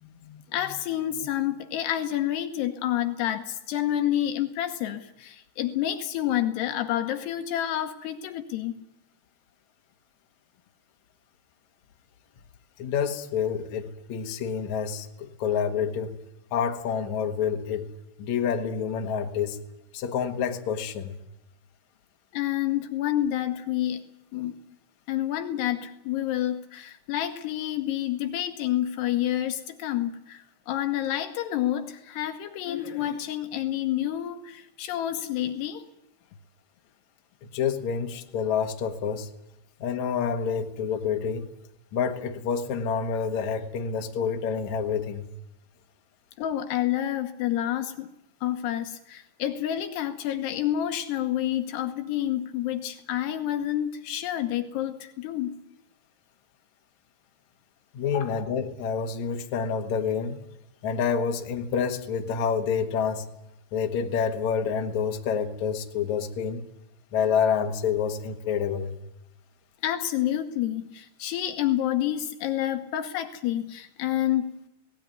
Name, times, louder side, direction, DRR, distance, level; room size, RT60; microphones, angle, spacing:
voice 1, 0.0-8.8 22.3-24.0 24.3-24.6 25.1-35.8 46.4-48.1 48.4-55.5 58.0-58.5 69.8-74.5, left 12 dB, 75° left, 7 dB, 3.1 m, -29 dB
voice 2, 12.8-16.2 16.5-17.9 18.2-19.6 19.9-21.2 37.5-39.3 39.8-41.5 41.9-45.3 57.9-60.4 60.8-63.3 63.7-66.6 67.1-68.9, left 7 dB, 55° left, 4 dB, 2.3 m, -28 dB
19.0 x 18.0 x 9.5 m, 0.88 s
omnidirectional pair, 5.1 m